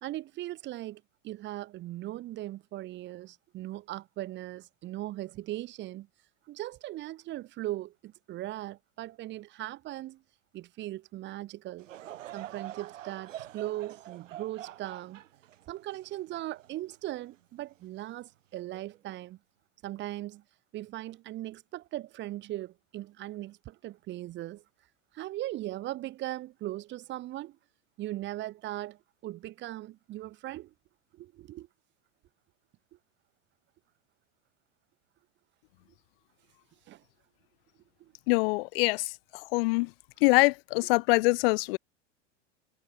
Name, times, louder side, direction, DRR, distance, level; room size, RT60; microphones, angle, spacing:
voice 1, 0.0-6.1 6.5-10.2 10.5-11.9 12.3-15.2 15.7-19.4 19.8-20.4 20.7-24.6 25.1-27.6 28.0-30.7 31.1-31.7 36.9-37.0 38.0-38.1, right 15 dB, 30° right, 1.1 m, -39 dB
Laughter / Crowd, 11.8-17.3 17.8-17.9 18.7-19.0, right 12 dB, 90° right, 2.3 m, -45 dB
voice 2, 38.3-39.9 40.2-41.8, left 26 dB, 50° left, 0.8 m, -24 dB
supercardioid pair, 140°, 37 cm